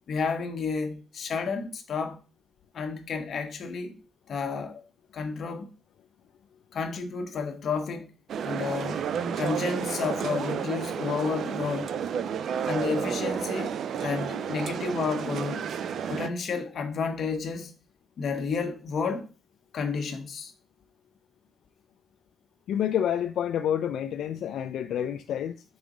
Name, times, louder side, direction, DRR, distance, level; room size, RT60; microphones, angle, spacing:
voice 1, 0.1-2.2 2.7-4.0 4.3-4.8 5.1-5.7 6.7-8.1 8.4-9.0 9.4-11.9 12.6-15.7 16.1-17.7 18.2-19.3 19.7-20.5, left 5 dB, 60° left, 1.0 m, -31 dB
sound 1, 8.3-16.3, right 7 dB, 70° right, 0.4 m, -31 dB
voice 2, 22.7-25.6, left 9 dB, 85° left, 0.4 m, -28 dB
5.3 x 3.9 x 4.8 m
cardioid pair, 120°, 0 cm